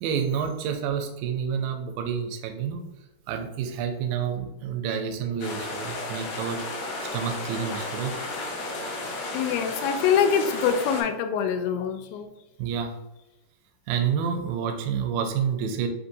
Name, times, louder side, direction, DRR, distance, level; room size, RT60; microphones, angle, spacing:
voice 1, 0.0-2.9 3.3-6.6 7.1-8.2 12.6-13.0 13.9-15.9, right 7 dB, 80° right, 4 dB, 1.8 m, -29 dB
sound 1, 5.4-11.0, left 2 dB, 70° left, 2.5 m, -33 dB
voice 2, 9.3-12.3, left 7 dB, 90° left, 7 dB, 2.4 m, -24 dB
5.9 x 2.9 x 2.7 m, 0.97 s
omnidirectional pair, 4.2 m